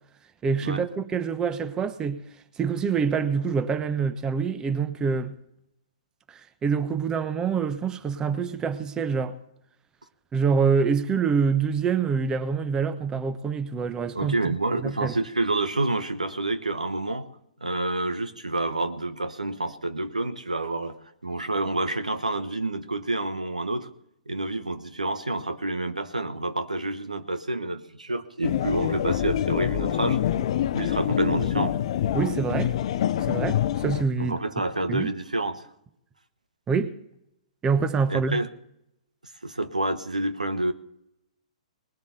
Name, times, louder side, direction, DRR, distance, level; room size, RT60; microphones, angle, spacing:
voice 1, 0.4-2.2 2.6-5.3 6.3-9.4 10.3-14.5 14.8-15.1 32.1-32.7 33.3-34.3 34.9-35.1 36.7-36.9 37.6-38.4, right 5 dB, 20° right, 1.0 m, -26 dB
voice 2, 14.1-17.3 17.6-21.0 21.2-23.9 24.3-30.2 30.7-31.8 34.2-35.6 38.1-38.5 39.4-40.7, right 2 dB, 90° right, 1.1 m, -28 dB
sound 1, 28.4-34.0, left 11 dB, 55° left, 0.6 m, -26 dB
19.5 x 7.1 x 6.7 m
figure-of-eight pair, 120°, 4 cm